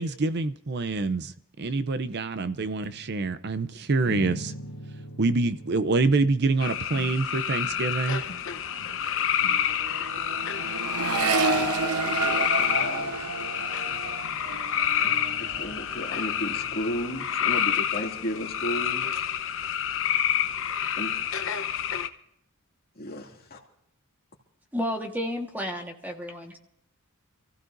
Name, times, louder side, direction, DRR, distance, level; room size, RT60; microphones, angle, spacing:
voice 1, 0.0-4.5 5.2-8.2, right 3 dB, 50° right, 0.6 m, -26 dB
sound 1, 2.8-3.5 4.0-7.4 7.7-8.0 8.2-9.0 9.3-9.7 10.6-10.7 11.1-11.3 11.6-11.8 12.6-13.3 13.9-15.7 16.2-16.3, equal, 75° left, 1.5 m, -43 dB
sound 2, 6.6-22.1, left 9 dB, 60° left, 0.9 m, -28 dB
Accelerating revving vroom, 8.3-8.4 8.6-16.2 16.5-17.1, right 3 dB, 80° right, 1.0 m, -31 dB
voice 2, 11.2-13.2 15.4-19.3 20.9-21.2 22.9-23.6, equal, 40° left, 2.5 m, -35 dB
voice 3, 24.7-26.6, equal, 10° right, 1.4 m, -31 dB
27.5 x 15.0 x 2.6 m
head